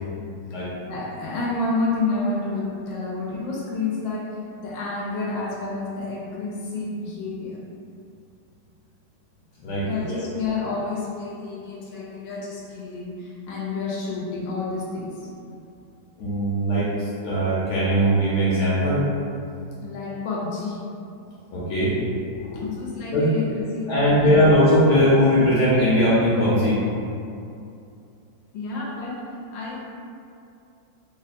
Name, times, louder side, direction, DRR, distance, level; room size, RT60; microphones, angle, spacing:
voice 1, 0.5-7.6 9.8-15.3 19.8-20.8 22.3-24.5 28.5-29.2 29.5-29.9, left 3 dB, 80° left, -5 dB, 1.3 m, -30 dB
voice 2, 9.6-10.2 16.2-19.0 21.5-22.0 23.1-23.3 23.9-26.8, equal, 65° left, -9 dB, 1.2 m, -20 dB
3.3 x 2.1 x 4.0 m, 2.5 s
omnidirectional pair, 2.1 m